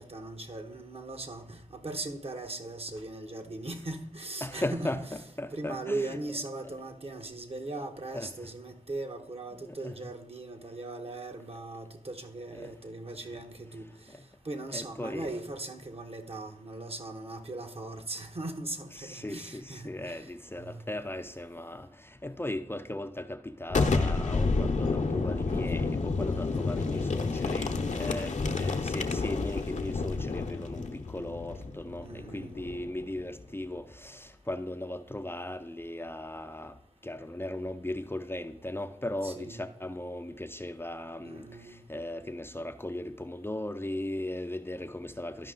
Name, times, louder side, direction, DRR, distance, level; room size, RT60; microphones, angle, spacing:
voice 1, 0.0-5.0 5.5-14.1 14.4-20.3 20.6-20.8 32.0-32.6 39.2-39.7 41.2-41.8, right 2 dB, 45° right, 1.2 m, -39 dB
voice 2, 4.4-6.2 8.1-8.3 9.5-10.0 12.6-12.7 14.1-14.2 14.7-15.3 19.0-36.8 37.0-45.5, left 1 dB, 15° left, 0.6 m, -37 dB
Boom, 23.7-33.3, left 3 dB, 55° left, 0.9 m, -30 dB
12.0 x 5.3 x 3.8 m
cardioid pair, 40°, 14 cm